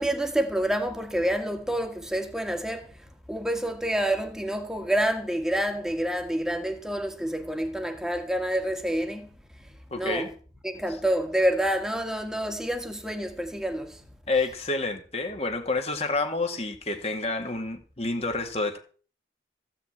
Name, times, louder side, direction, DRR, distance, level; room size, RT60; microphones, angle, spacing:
voice 1, 0.0-10.3 10.6-14.0, right 1 dB, 5° right, 1.8 m, -28 dB
voice 2, 9.9-10.3 14.3-18.8, left 3 dB, 35° left, 2.1 m, -29 dB
15.0 x 5.8 x 8.8 m
head